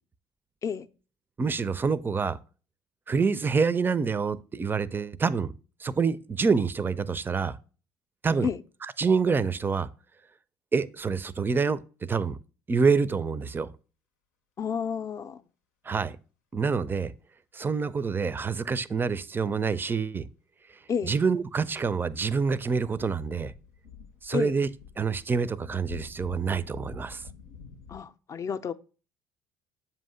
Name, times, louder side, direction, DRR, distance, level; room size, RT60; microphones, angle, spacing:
voice 1, 1.4-2.4 3.1-5.5 5.8-7.6 8.2-8.5 9.0-9.9 10.7-11.8 12.1-12.4 12.7-13.7 15.8-16.2 16.5-17.1 17.5-20.3 21.0-23.5 24.2-24.7 25.0-27.2, right 5 dB, 25° right, 0.4 m, -26 dB
voice 2, 14.6-15.4 20.9-21.1 24.3-24.6 27.9-28.7, left 7 dB, 40° left, 0.5 m, -30 dB
sound 1, 21.5-28.0, left 6 dB, 90° left, 0.7 m, -48 dB
7.3 x 2.8 x 5.5 m
hypercardioid pair, 65°, 8 cm